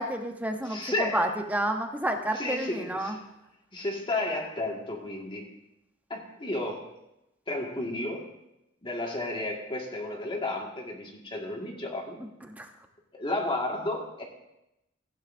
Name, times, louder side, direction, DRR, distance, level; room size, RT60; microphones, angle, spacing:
voice 1, 0.0-3.1 12.5-12.7, right 1 dB, 10° right, 4 dB, 0.9 m, -30 dB
voice 2, 0.7-1.3 2.3-3.2 3.7-5.5 6.1-6.9 7.5-8.3 8.8-12.2 13.1-14.2, left 2 dB, 25° left, 0 dB, 1.8 m, -32 dB
16.0 x 9.6 x 2.6 m, 0.87 s
head